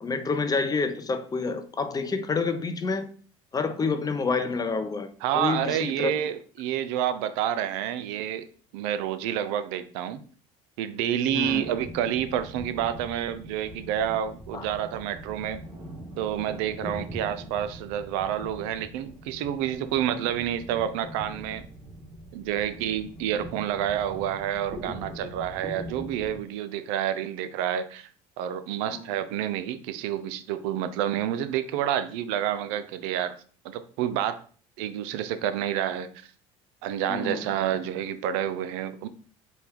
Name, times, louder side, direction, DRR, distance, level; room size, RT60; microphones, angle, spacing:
voice 1, 0.0-3.1 3.5-5.1 5.3-6.1 11.3-11.7 14.5-14.7 28.9-29.0 37.1-37.5, left 4 dB, 25° left, 0.6 m, -28 dB
voice 2, 5.2-8.5 8.7-10.2 10.8-15.6 16.2-21.6 22.3-28.1 28.4-33.4 33.6-34.4 34.8-36.1 36.8-39.1, right 10 dB, 80° right, 0.4 m, -29 dB
sound 1, 11.4-26.4, right 1 dB, 35° right, 1.6 m, -42 dB
4.3 x 2.2 x 3.5 m
supercardioid pair, 85°, 16 cm